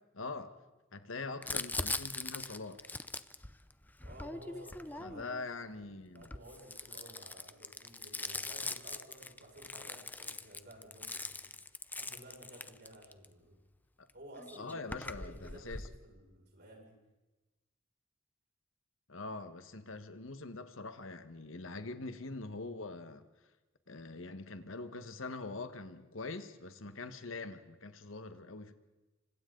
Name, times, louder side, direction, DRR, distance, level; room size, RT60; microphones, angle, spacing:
voice 1, 0.1-0.6 0.9-2.9 5.0-6.3 14.0-14.1 14.6-15.9 19.1-23.2 23.9-28.7, left 3 dB, 80° left, 1.5 m, -43 dB
Crumpling crinkling, 1.4-5.5 6.2-13.3 14.1-14.2 14.4-16.0, left 3 dB, 10° left, 0.6 m, -41 dB
voice 2, 4.0-5.7 6.1-11.7 11.9-13.5 14.1-14.8 15.1-17.0, equal, 55° right, 6.2 m, -54 dB
27.5 x 25.0 x 3.9 m
head